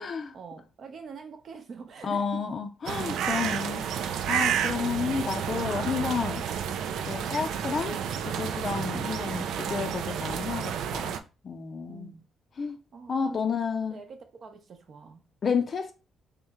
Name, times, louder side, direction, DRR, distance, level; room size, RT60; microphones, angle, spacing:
voice 1, 0.0-2.4 11.9-12.2 12.9-13.4 13.9-15.2, right 5 dB, 55° right, 0.7 m, -45 dB
voice 2, 2.0-6.4 7.1-8.0 8.2-11.2 11.4-12.2 12.6-12.8 13.1-14.0 15.4-15.9, left 6 dB, 45° left, 0.4 m, -31 dB
sound 1, 2.9-11.2, right 8 dB, 80° right, 0.3 m, -30 dB
3.2 x 3.0 x 3.5 m
cardioid pair, 90°, 0 cm